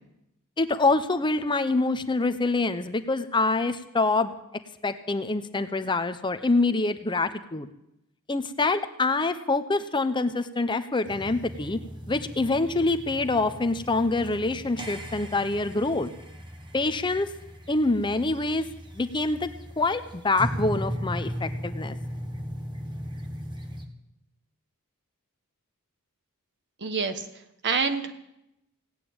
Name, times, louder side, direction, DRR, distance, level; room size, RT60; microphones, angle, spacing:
voice 1, 0.6-4.3 4.8-7.7 8.3-11.8 12.1-16.1 16.7-17.3 17.7-18.7 18.9-19.5 19.8-21.9, left 3 dB, 20° left, 9 dB, 0.7 m, -25 dB
sound 1, 11.1-23.8, equal, 20° right, 1.5 m, -37 dB
voice 2, 26.8-27.3 27.6-28.2, right 5 dB, 50° right, 8 dB, 1.3 m, -26 dB
17.5 x 8.9 x 8.7 m, 0.86 s
head